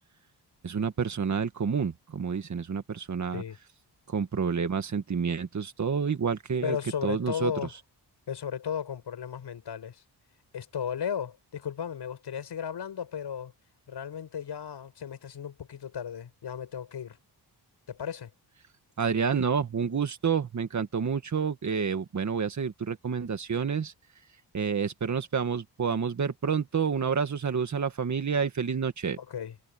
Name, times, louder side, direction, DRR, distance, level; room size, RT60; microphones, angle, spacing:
voice 1, 0.6-3.4 4.1-6.8 7.0-7.5 19.0-23.9 24.5-29.2, right 6 dB, 45° right, 1.8 m, -29 dB
voice 2, 6.6-7.7 8.3-10.0 10.5-13.5 13.9-17.2 17.9-18.3 29.3-29.5, left 8 dB, 80° left, 6.7 m, -35 dB
wide cardioid pair, 170°, 41 cm